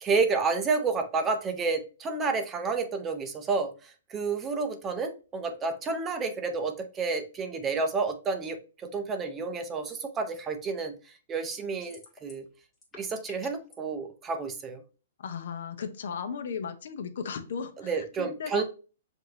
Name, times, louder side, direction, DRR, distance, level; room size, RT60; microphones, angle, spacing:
voice 1, 0.0-10.9 11.3-12.5 13.0-14.8 17.8-18.6, right 4 dB, 15° right, 7 dB, 0.5 m, -30 dB
sound 1, 11.8-12.5 12.7-13.8, left 3 dB, 15° left, 1.5 m, -50 dB
voice 2, 15.2-18.6, left 6 dB, 70° left, 9 dB, 0.7 m, -36 dB
5.8 x 2.6 x 2.8 m, 0.34 s
hypercardioid pair, 150°, 0 cm